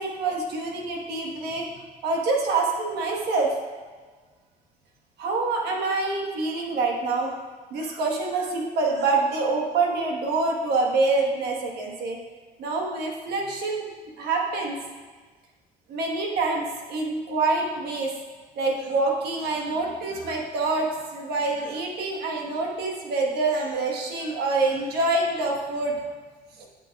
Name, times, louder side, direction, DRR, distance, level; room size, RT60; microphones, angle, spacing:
voice 1, 0.0-1.7 2.0-3.5 5.2-7.4 7.7-12.2 12.6-14.8 15.9-18.1 18.6-26.0 26.6-26.7, right 3 dB, 75° right, 0 dB, 1.3 m, -26 dB
8.0 x 7.9 x 2.3 m, 1.4 s
cardioid pair, 110°, 17 cm